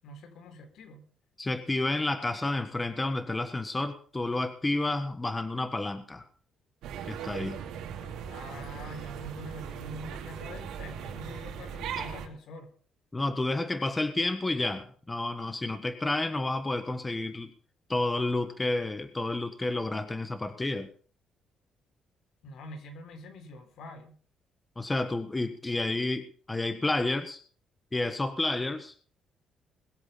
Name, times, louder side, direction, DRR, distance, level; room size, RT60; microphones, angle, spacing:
voice 1, 0.0-1.1 8.0-12.7 22.4-24.2, left 1 dB, 70° left, 5 dB, 4.0 m, -45 dB
voice 2, 1.4-6.2 7.1-7.6 13.1-17.5 17.9-20.9 24.8-27.4 27.9-28.9, left 2 dB, 15° left, 9 dB, 1.5 m, -30 dB
sound 1, 6.8-12.3, right 8 dB, 85° right, 2.9 m, -39 dB
21.0 x 7.9 x 5.6 m, 0.43 s
cardioid pair, 110°, 0 cm